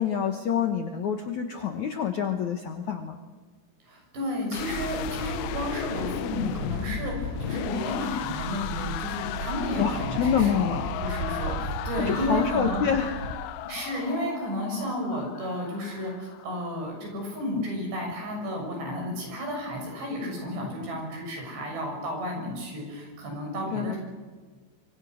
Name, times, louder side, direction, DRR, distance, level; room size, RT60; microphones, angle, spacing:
voice 1, 0.0-3.2 9.8-10.8 12.0-13.2 23.7-23.9, left 7 dB, 65° left, 5 dB, 2.0 m, -27 dB
voice 2, 3.8-12.8 13.6-24.0, left 1 dB, 70° right, 1 dB, 9.0 m, -32 dB
sound 1, 4.5-16.6, left 13 dB, 80° left, 3.0 m, -36 dB
sound 2, 4.6-13.3, right 2 dB, 40° right, 5.8 m, -36 dB
25.5 x 24.5 x 6.4 m, 1.4 s
omnidirectional pair, 5.0 m